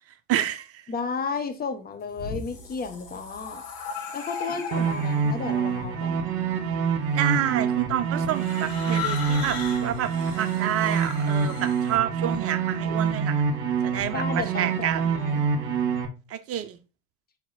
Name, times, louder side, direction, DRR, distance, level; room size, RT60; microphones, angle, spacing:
voice 1, 0.3-0.8 4.5-4.6 7.1-13.5 13.8-15.0 16.3-16.8, right 11 dB, 35° right, 0.8 m, -28 dB
voice 2, 0.9-3.6 4.1-6.2 14.1-15.5, left 5 dB, 20° left, 1.3 m, -33 dB
sound 1, 1.9-5.4 6.3-6.7 8.3-12.0, left 6 dB, 65° left, 2.4 m, -37 dB
sound 2, 4.7-16.0, right 6 dB, 55° right, 1.8 m, -26 dB
5.7 x 4.2 x 4.3 m
hypercardioid pair, 85°, 43 cm